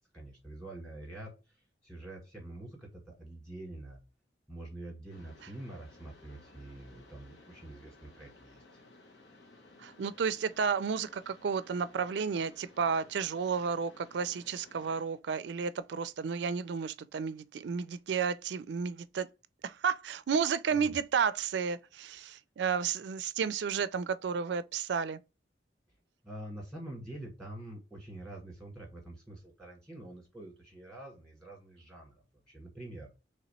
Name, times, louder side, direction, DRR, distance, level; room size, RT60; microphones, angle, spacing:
voice 1, 0.1-1.3 1.8-4.0 4.5-8.8 20.7-21.0 26.2-33.1, right 1 dB, 5° left, 1.6 m, -46 dB
Mechanisms, 5.1-15.1, left 2 dB, 85° left, 1.0 m, -57 dB
voice 2, 9.8-19.3 19.6-25.2, right 6 dB, 75° right, 0.4 m, -32 dB
3.2 x 2.9 x 4.1 m
head